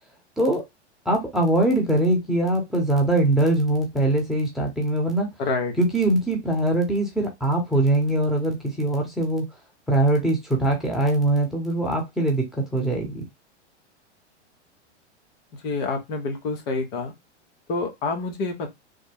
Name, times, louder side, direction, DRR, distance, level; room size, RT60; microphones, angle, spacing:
voice 1, 1.0-5.3 5.8-9.5 9.9-13.3, right 1 dB, ahead, 0 dB, 1.0 m, -22 dB
voice 2, 5.4-5.7 15.6-17.1 17.7-18.7, left 3 dB, 55° left, 5 dB, 1.1 m, -27 dB
3.4 x 2.1 x 3.4 m, 0.19 s
hypercardioid pair, 120°, 35 cm